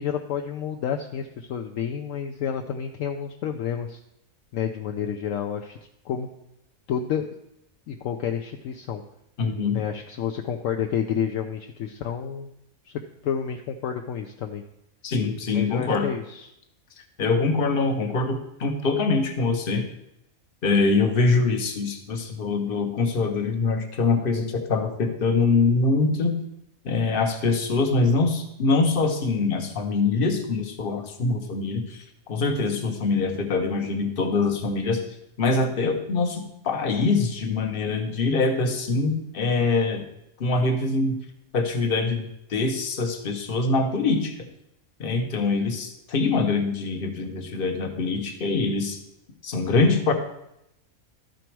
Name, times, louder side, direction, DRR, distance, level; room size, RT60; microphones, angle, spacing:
voice 1, 0.0-4.0 4.5-5.8 6.0-6.3 6.9-7.3 7.9-9.0 9.7-12.5 12.8-12.9 13.2-14.6 15.5-16.5 32.4-32.8, left 8 dB, 70° left, 4 dB, 0.9 m, -30 dB
voice 2, 9.4-9.8 15.0-16.1 17.2-19.8 20.6-26.4 26.8-32.0 32.3-35.0 35.4-40.0 40.4-41.2 41.5-44.3 45.0-49.0 49.4-50.1, left 3 dB, 45° left, 5 dB, 1.1 m, -24 dB
12.5 x 5.1 x 4.6 m, 0.81 s
omnidirectional pair, 1.5 m